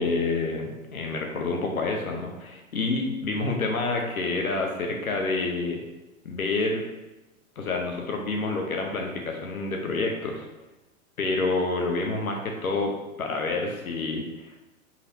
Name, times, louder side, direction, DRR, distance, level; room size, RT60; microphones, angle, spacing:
voice 1, 0.0-5.8 6.2-6.8 7.6-10.5 11.2-12.9 13.2-14.6, left 3 dB, 85° left, 2 dB, 0.9 m, -28 dB
5.4 x 3.3 x 2.7 m, 1.1 s
hypercardioid pair, 120°, 41 cm